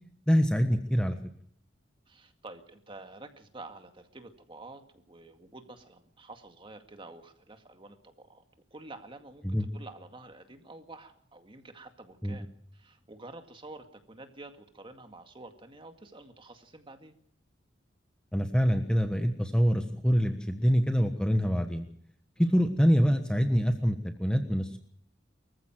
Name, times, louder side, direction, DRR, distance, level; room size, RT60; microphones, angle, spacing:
voice 1, 0.3-1.2 9.4-9.6 12.2-12.4 18.3-21.9 22.4-24.8, equal, 5° left, 6 dB, 1.3 m, -25 dB
voice 2, 2.1-8.4 8.7-12.5 12.7-17.1 22.4-22.6, right 2 dB, 30° right, 6 dB, 2.2 m, -49 dB
24.5 x 15.0 x 7.6 m, 0.66 s
head